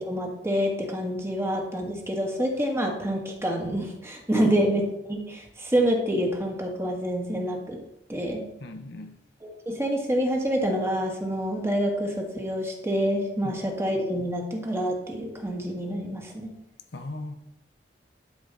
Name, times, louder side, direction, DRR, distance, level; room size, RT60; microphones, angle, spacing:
voice 1, 0.0-7.8 8.1-8.4 9.4-16.5, equal, 15° right, 1.6 m, -27 dB
voice 2, 8.6-9.2 13.4-13.6 16.9-17.3, left 2 dB, 65° left, 0.9 m, -37 dB
12.0 x 5.0 x 4.0 m
head